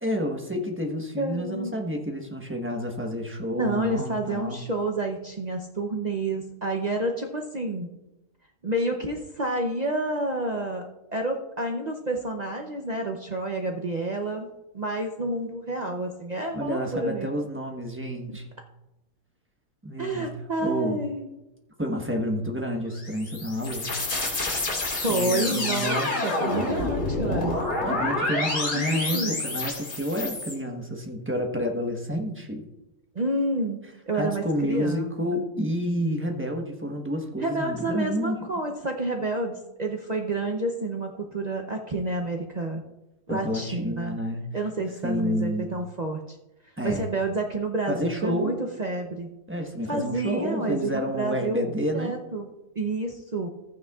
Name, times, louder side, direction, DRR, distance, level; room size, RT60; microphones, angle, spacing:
voice 1, 0.0-4.6 16.5-18.5 19.8-20.3 20.6-21.0 21.8-23.9 25.1-26.1 27.9-32.6 34.1-38.4 43.3-44.5 45.0-45.7 46.8-47.1 47.9-48.6 49.5-52.1, equal, 10° right, 1 dB, 0.8 m, -29 dB
voice 2, 1.2-1.7 3.5-7.9 8.6-10.8 11.1-17.3 20.0-21.3 24.9-27.6 28.7-29.4 33.1-35.4 37.4-42.8 43.3-44.2 44.5-46.2 46.8-49.3 49.9-52.5 52.8-53.5, right 2 dB, 50° right, 2 dB, 0.5 m, -29 dB
sound 1, 22.9-30.5, left 2 dB, 70° left, 2.6 m, -28 dB
14.5 x 9.2 x 2.4 m, 0.96 s
omnidirectional pair, 1.7 m